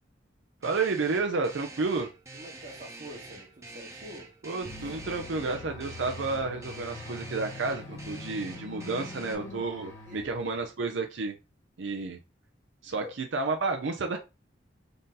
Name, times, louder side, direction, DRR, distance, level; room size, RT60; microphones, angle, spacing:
sound 1, 0.6-9.3, right 2 dB, 15° right, 0.8 m, -46 dB
voice 1, 0.6-2.1 4.4-11.3 11.8-12.2 12.8-14.2, right 3 dB, 90° right, 0.6 m, -31 dB
voice 2, 2.3-4.3 10.1-10.3 13.0-13.1, equal, 45° right, 1.1 m, -46 dB
sound 2, 4.6-10.8, left 2 dB, 70° left, 1.5 m, -48 dB
sound 3, 4.6-9.6, left 2 dB, 30° left, 0.5 m, -45 dB
3.9 x 2.7 x 3.7 m
head